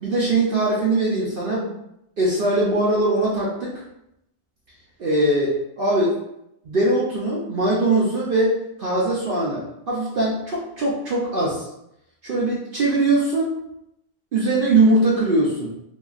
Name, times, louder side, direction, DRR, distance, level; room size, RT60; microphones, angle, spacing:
voice 1, 0.0-1.7 2.2-3.7 5.0-6.2 6.7-11.7 12.2-13.5 14.3-15.7, right 2 dB, 60° right, -5 dB, 0.6 m, -21 dB
2.8 x 2.4 x 2.3 m, 0.81 s
omnidirectional pair, 1.3 m